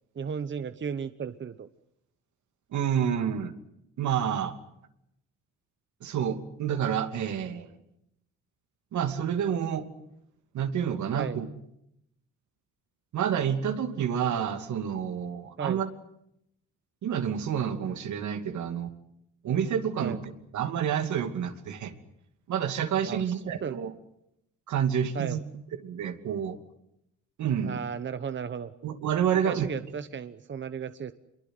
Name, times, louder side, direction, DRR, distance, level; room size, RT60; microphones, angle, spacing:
voice 1, 0.1-1.7 11.1-11.4 15.6-15.8 20.0-20.2 23.0-23.8 25.1-25.4 27.6-28.7 29.4-31.1, right 7 dB, 40° right, 12 dB, 1.0 m, -35 dB
voice 2, 2.7-3.5 4.0-4.5 6.0-7.7 8.9-9.9 10.5-11.5 13.1-15.9 17.0-18.9 19.4-21.9 22.5-23.9 24.7-25.4 25.8-26.6 27.4-27.8 28.8-29.7, right 8 dB, 70° right, 7 dB, 2.7 m, -29 dB
26.0 x 23.0 x 7.9 m, 0.79 s
cardioid pair, 90°, 30 cm